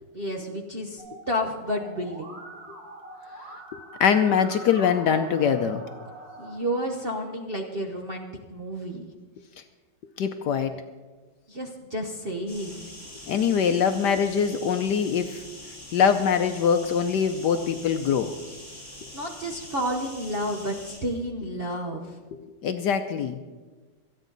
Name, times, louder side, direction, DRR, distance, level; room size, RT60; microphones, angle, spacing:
voice 1, 0.1-2.3 6.4-9.1 11.5-12.9 19.1-22.2, equal, 40° right, 2 dB, 0.9 m, -31 dB
Musical instrument, 1.0-6.5, right 1 dB, 60° right, 4.8 m, -43 dB
voice 2, 4.0-5.8 10.2-10.7 13.3-15.4 15.9-18.3 22.3-23.4, left 7 dB, 65° left, 8 dB, 1.1 m, -23 dB
sound 1, 12.5-21.0, left 1 dB, 25° left, 5.3 m, -44 dB
27.0 x 9.2 x 4.0 m, 1.3 s
omnidirectional pair, 2.2 m